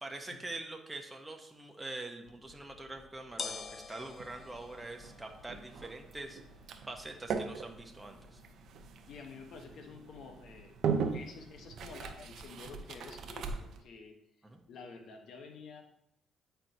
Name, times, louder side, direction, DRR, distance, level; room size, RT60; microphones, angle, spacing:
voice 1, 0.0-6.4 6.9-8.4 14.4-14.6, right 2 dB, 10° right, 2 dB, 0.7 m, -44 dB
sound 1, 2.3-12.3, left 5 dB, 50° left, 0.5 m, -50 dB
sound 2, 4.0-13.8, right 6 dB, 70° right, 0.6 m, -40 dB
voice 2, 9.1-14.1 14.7-15.8, left 4 dB, 70° left, 4 dB, 0.9 m, -49 dB
8.6 x 4.5 x 2.7 m, 0.78 s
cardioid pair, 90°, 0 cm